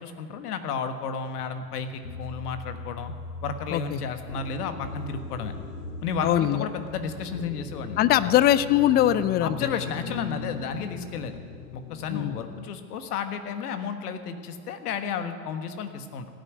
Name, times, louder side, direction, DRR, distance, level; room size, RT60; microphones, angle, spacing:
voice 1, 0.0-3.1 3.4-5.5 6.0-8.3 9.4-11.4 11.7-16.3, left 6 dB, 70° left, 8 dB, 1.5 m, -32 dB
sound 1, 1.6-12.7, left 4 dB, 90° left, 1.1 m, -39 dB
voice 2, 6.2-6.7 8.0-9.6 12.1-12.4, left 12 dB, 25° left, 16 dB, 0.3 m, -21 dB
16.0 x 9.0 x 9.4 m, 2.2 s
hypercardioid pair, 85°, 47 cm